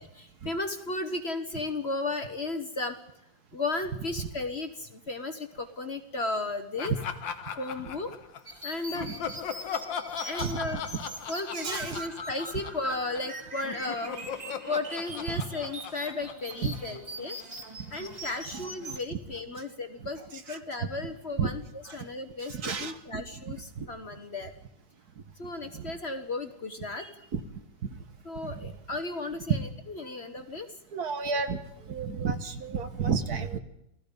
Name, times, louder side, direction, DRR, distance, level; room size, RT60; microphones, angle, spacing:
voice 1, 0.0-3.0 3.5-6.9 7.5-8.1 8.6-9.3 10.2-10.8 11.3-17.4 17.9-24.5 25.4-27.1 28.2-30.7, left 2 dB, 40° left, 8 dB, 1.4 m, -35 dB
Laughter, 6.8-8.5 8.9-13.3 13.6-17.2, left 7 dB, 80° left, 2.0 m, -38 dB
sound 1, 8.5-19.0, right 1 dB, 20° right, 2.0 m, -43 dB
voice 2, 11.5-12.0 15.3-15.4 16.6-16.7 18.5-19.0 20.5-20.6 21.4-21.5 21.9-22.0 22.5-23.9 25.7-25.8 27.0-27.4 28.4-28.7 29.5-29.6 30.9-31.6 31.9-33.6, right 6 dB, 55° right, 9 dB, 1.7 m, -32 dB
28.5 x 17.5 x 5.3 m, 0.79 s
omnidirectional pair, 2.0 m